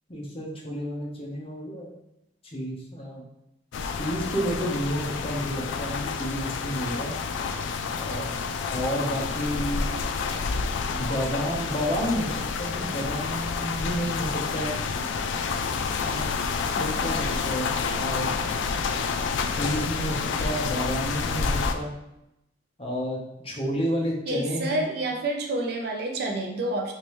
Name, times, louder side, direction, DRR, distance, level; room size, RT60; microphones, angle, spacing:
voice 1, 0.1-1.9 2.4-3.2 3.9-7.2 7.9-8.3 8.7-9.9 11.0-14.8 15.9-16.4 16.7-18.3 19.5-21.9 22.8-23.2 23.4-24.8, equal, 30° left, -3 dB, 0.8 m, -30 dB
sound 1, 3.7-21.7, left 5 dB, 70° left, 0.3 m, -29 dB
voice 2, 24.3-26.9, right 2 dB, 55° right, 2 dB, 0.6 m, -28 dB
3.3 x 3.1 x 3.0 m, 0.86 s
head